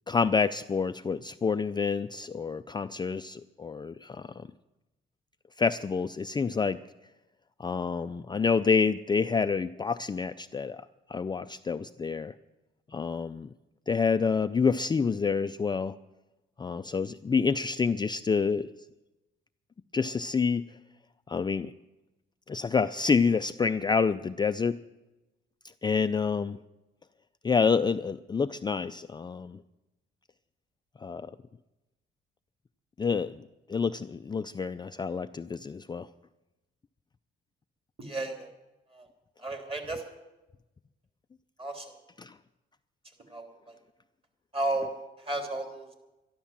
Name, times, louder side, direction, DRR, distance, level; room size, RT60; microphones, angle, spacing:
voice 1, 0.1-4.5 5.6-6.8 7.6-12.3 12.9-13.5 13.9-16.0 16.6-18.7 19.9-20.8 21.3-21.7 22.5-24.8 25.8-26.6 27.4-29.6 31.0-31.3 33.0-33.4 33.7-36.1 42.2-42.4, left 5 dB, 20° left, 10 dB, 0.4 m, -28 dB
voice 2, 38.0-38.5 38.9-39.0 39.4-40.0 41.6-41.9 43.3-43.4 44.5-44.9 45.2-45.9, right 2 dB, 30° right, 4 dB, 3.2 m, -32 dB
12.5 x 12.0 x 7.3 m, 1.0 s
cardioid pair, 90°, 20 cm